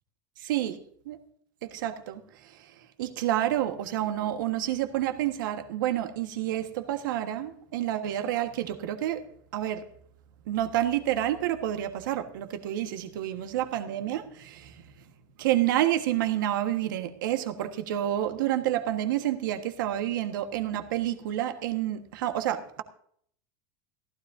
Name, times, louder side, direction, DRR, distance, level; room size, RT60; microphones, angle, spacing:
voice 1, 0.4-0.8 1.0-1.2 1.6-2.2 3.0-9.3 9.5-9.8 10.5-14.7 15.4-22.8, right 12 dB, 80° right, 1.5 m, -29 dB
15.0 x 12.5 x 2.7 m
supercardioid pair, 180°, 11 cm